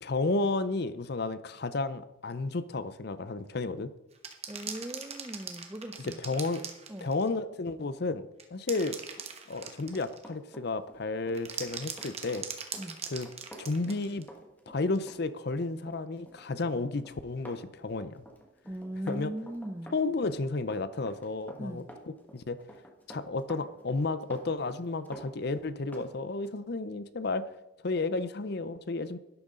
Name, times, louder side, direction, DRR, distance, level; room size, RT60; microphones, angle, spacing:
voice 1, 0.0-3.9 6.0-6.6 7.0-8.2 8.5-9.0 9.5-12.5 13.1-13.3 13.6-14.3 14.7-18.2 19.1-19.3 19.9-22.6 23.1-27.5 27.8-29.2, left 3 dB, 50° left, 14 dB, 0.6 m, -32 dB
sound 1, 4.2-7.3 8.4-10.3 11.3-14.3 15.0-15.1, right 6 dB, 30° right, 1.2 m, -40 dB
voice 2, 4.5-6.4 6.9-7.1 12.8-13.0 18.6-19.9 21.6-21.8, right 1 dB, 10° right, 10 dB, 0.6 m, -39 dB
Run, 9.2-26.1 26.4-26.6, right 1 dB, 10° left, 1.4 m, -50 dB
12.0 x 11.5 x 3.8 m, 0.95 s
head